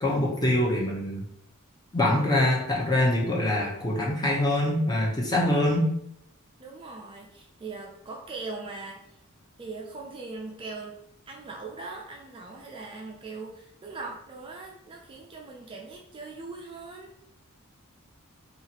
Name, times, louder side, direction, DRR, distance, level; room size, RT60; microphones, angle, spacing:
voice 1, 0.0-1.3 1.9-5.9, left 1 dB, 20° left, -2 dB, 0.6 m, -24 dB
voice 2, 6.6-9.2 9.6-11.0 11.3-17.1, right 3 dB, 25° right, -1 dB, 0.3 m, -40 dB
2.7 x 2.4 x 2.8 m, 0.75 s
head